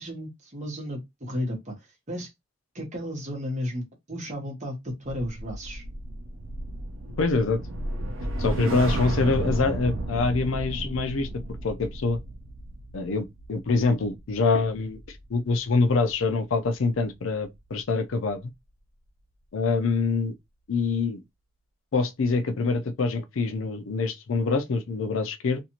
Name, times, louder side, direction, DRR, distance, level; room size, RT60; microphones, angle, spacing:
voice 1, 0.0-1.7 2.1-2.3 2.7-5.8, equal, 35° right, 1.1 m, -33 dB
sound 1, 5.0-15.5 15.8-16.1, right 1 dB, 70° right, 0.6 m, -33 dB
voice 2, 7.2-7.6 8.4-12.2 12.9-18.4 19.5-20.3 20.7-21.2 21.9-25.6, left 4 dB, 75° left, 0.5 m, -25 dB
2.6 x 2.5 x 2.8 m
head